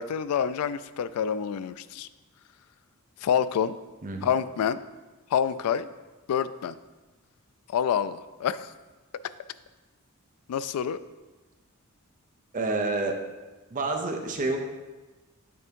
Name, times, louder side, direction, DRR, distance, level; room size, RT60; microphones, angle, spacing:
voice 1, 0.0-2.1 3.2-3.8 4.2-4.8 5.3-5.9 6.3-6.8 7.7-8.7 10.5-11.0, left 8 dB, 75° left, 15 dB, 0.3 m, -27 dB
voice 2, 12.5-13.2 13.7-14.6, right 3 dB, 35° right, 3 dB, 0.7 m, -28 dB
6.8 x 3.5 x 5.2 m, 1.2 s
head